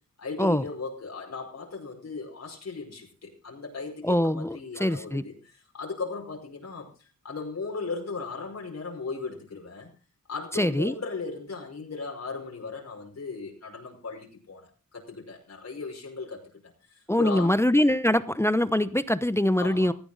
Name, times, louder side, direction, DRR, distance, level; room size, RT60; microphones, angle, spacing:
voice 1, 0.2-9.9 10.3-17.6 19.6-19.9, left 4 dB, 50° left, 0 dB, 5.1 m, -37 dB
voice 2, 4.0-5.2 10.5-10.9 17.1-19.9, left 1 dB, 10° left, 14 dB, 0.8 m, -23 dB
17.5 x 14.5 x 4.0 m, 0.33 s
wide cardioid pair, 105°, 33 cm